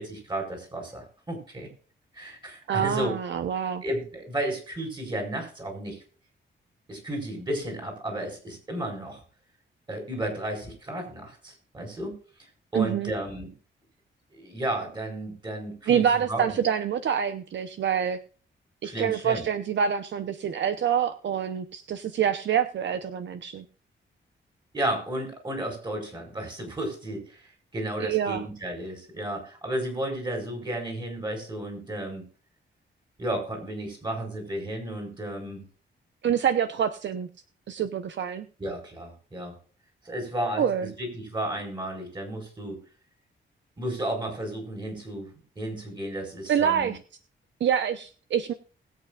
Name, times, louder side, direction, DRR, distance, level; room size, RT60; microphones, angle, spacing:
voice 1, 0.0-1.7 2.1-3.2 3.8-6.0 6.9-9.2 9.9-12.1 12.7-13.5 14.3-16.5 18.8-19.4 24.7-27.4 27.7-32.2 33.2-35.6 38.6-39.5 40.0-42.8 43.8-45.3 45.5-46.9, right 1 dB, 20° right, 3 dB, 4.9 m, -33 dB
voice 2, 2.7-3.8 12.7-13.1 15.9-18.2 18.8-23.6 28.0-28.4 36.2-37.3 37.7-38.5 40.6-40.9 46.5-47.0 47.6-48.5, right 8 dB, 65° right, 10 dB, 0.8 m, -26 dB
20.5 x 8.3 x 2.4 m, 0.40 s
wide cardioid pair, 160°, 20 cm